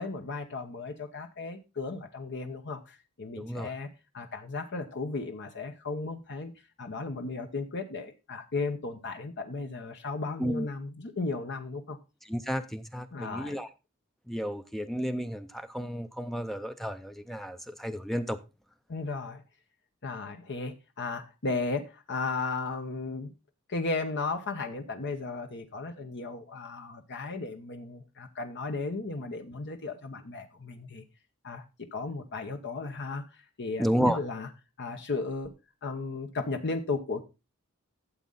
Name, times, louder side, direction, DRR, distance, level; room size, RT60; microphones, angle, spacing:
voice 1, 0.0-6.5 6.8-12.0 13.1-13.6 18.9-19.4 20.0-23.3 23.7-31.0 31.4-31.6 31.9-34.5 34.8-35.5 35.8-37.2, left 3 dB, 55° left, 0.9 m, -35 dB
voice 2, 3.4-3.7 10.4-10.6 12.3-13.7 14.3-18.4 33.8-34.2, equal, ahead, 0.6 m, -32 dB
13.0 x 7.5 x 3.9 m
head